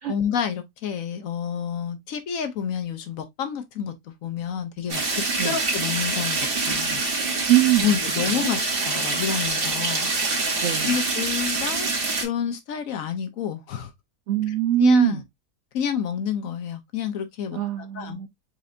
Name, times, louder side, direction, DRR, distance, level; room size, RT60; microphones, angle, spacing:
voice 1, 0.1-3.9 4.2-7.0 7.8-10.1 10.8-11.9 12.2-13.9 14.8-15.2 15.7-17.6 17.9-18.2, left 8 dB, 65° left, 1.0 m, -28 dB
sound 1, 4.9-12.2, right 3 dB, 40° right, 1.2 m, -25 dB
voice 2, 7.5-8.0 8.3-8.5 10.6-10.9 14.3-15.2 17.5-18.3, right 16 dB, 70° right, 0.6 m, -22 dB
4.2 x 4.0 x 2.4 m
omnidirectional pair, 1.7 m